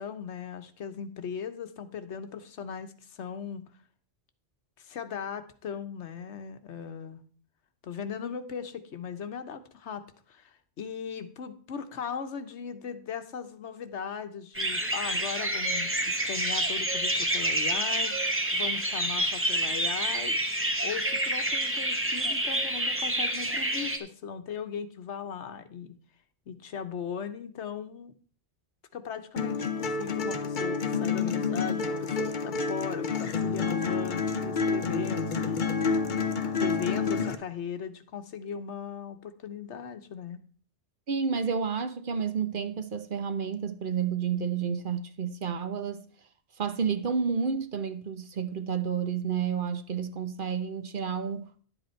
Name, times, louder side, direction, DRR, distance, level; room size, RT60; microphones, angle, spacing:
voice 1, 0.0-3.6 4.8-7.2 7.8-20.4 20.8-26.0 26.5-28.1 28.9-35.6 36.6-40.4, left 7 dB, 85° left, 1.2 m, -38 dB
sound 1, 14.5-24.0, right 1 dB, 10° right, 1.0 m, -28 dB
sound 2, 29.4-37.3, left 5 dB, 50° left, 0.9 m, -29 dB
voice 2, 41.1-46.0 46.6-51.5, right 6 dB, 50° right, 0.9 m, -30 dB
11.0 x 8.0 x 4.4 m
omnidirectional pair, 1.2 m